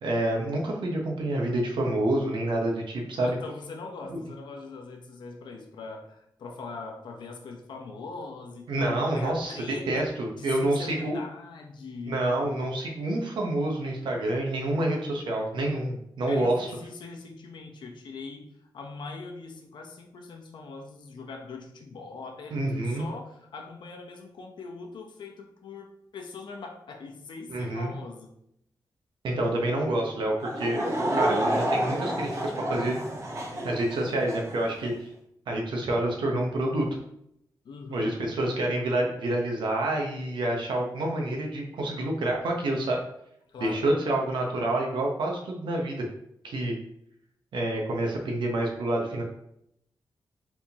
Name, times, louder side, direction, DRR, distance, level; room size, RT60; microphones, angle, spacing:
voice 1, 0.0-3.3 4.1-4.2 8.7-9.6 9.9-11.2 12.1-16.7 22.5-23.0 27.5-27.9 29.2-30.8 31.2-33.0 33.6-35.1 35.5-36.9 37.9-43.0 43.6-46.1 46.4-46.7 47.5-49.2, right 1 dB, 85° right, 1 dB, 0.9 m, -28 dB
voice 2, 3.2-12.2 16.3-22.6 22.8-28.3 37.6-38.2 43.5-43.8, left 4 dB, 75° left, 2 dB, 0.8 m, -41 dB
Laughter / Crowd, 30.4-34.6, right 1 dB, 35° right, 0.7 m, -29 dB
4.6 x 3.5 x 2.8 m, 0.76 s
wide cardioid pair, 165°, 8 cm